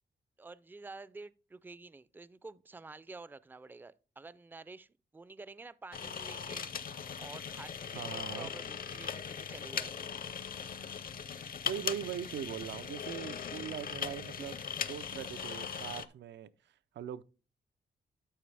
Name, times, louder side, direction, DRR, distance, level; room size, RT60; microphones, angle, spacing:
voice 1, 0.4-6.9 7.2-10.1, right 3 dB, 10° right, 0.3 m, -50 dB
sound 1, 5.9-16.0, left 7 dB, 50° left, 0.6 m, -39 dB
voice 2, 7.9-8.5 11.6-16.5 16.9-17.2, right 9 dB, 80° right, 0.4 m, -41 dB
12.5 x 4.7 x 3.3 m
cardioid pair, 85°, 18 cm